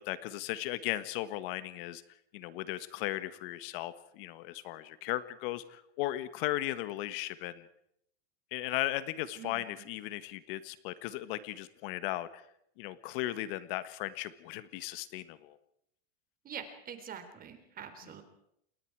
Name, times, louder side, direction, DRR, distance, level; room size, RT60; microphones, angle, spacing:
voice 1, 0.1-2.0 2.3-7.6 8.5-12.4 12.8-15.6, left 15 dB, 55° left, 13 dB, 1.6 m, -36 dB
voice 2, 9.4-9.9 16.4-18.2, right 8 dB, 25° right, 8 dB, 3.8 m, -45 dB
29.5 x 21.5 x 4.8 m, 0.74 s
supercardioid pair, 140°, 33 cm